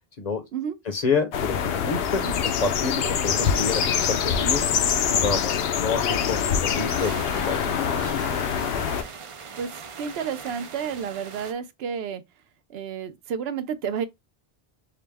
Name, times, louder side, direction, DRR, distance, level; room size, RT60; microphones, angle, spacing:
voice 1, 0.9-4.6 5.1-7.2 7.4-8.1, left 4 dB, 45° left, 0.7 m, -28 dB
sound 1, 1.3-9.0, left 7 dB, 75° left, 0.8 m, -24 dB
sound 2, 6.2-11.5, right 6 dB, 50° right, 0.4 m, -40 dB
voice 2, 9.6-12.2 12.7-14.1, right 7 dB, 75° right, 0.8 m, -31 dB
4.8 x 2.1 x 3.4 m
omnidirectional pair, 1.0 m